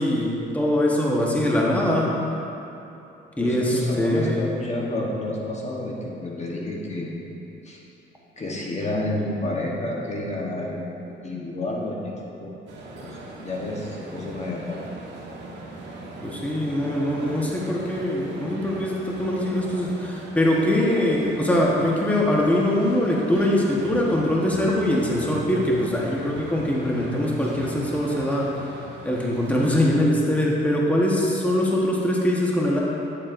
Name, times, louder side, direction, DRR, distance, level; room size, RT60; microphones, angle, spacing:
voice 1, 0.0-2.1 3.4-4.4 16.2-28.7 29.0-32.8, left 1 dB, 5° left, -4 dB, 1.1 m, -22 dB
voice 2, 3.4-7.1 7.6-7.8 8.4-10.8 11.1-12.1 12.4-12.5 13.0-13.2 13.4-14.8, left 1 dB, 35° left, -3 dB, 1.1 m, -30 dB
sound 1, 12.7-29.9, right 2 dB, 65° right, 1.3 m, -40 dB
9.6 x 7.2 x 2.5 m, 2.9 s
cardioid pair, 90°, 20 cm